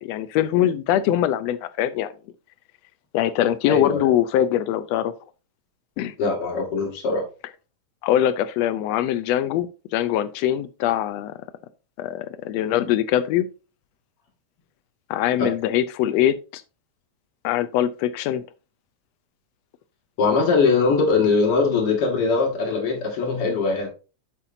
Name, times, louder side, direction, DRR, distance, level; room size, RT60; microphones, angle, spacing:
voice 1, 0.0-2.1 3.1-5.1 6.0-6.1 8.0-11.3 12.0-13.5 15.1-16.6 17.4-18.4, left 11 dB, 80° left, 1.6 m, -22 dB
voice 2, 3.7-4.1 6.2-7.2 15.4-15.5 20.2-23.9, left 4 dB, 50° left, 2.8 m, -21 dB
8.0 x 7.5 x 2.6 m
omnidirectional pair, 3.4 m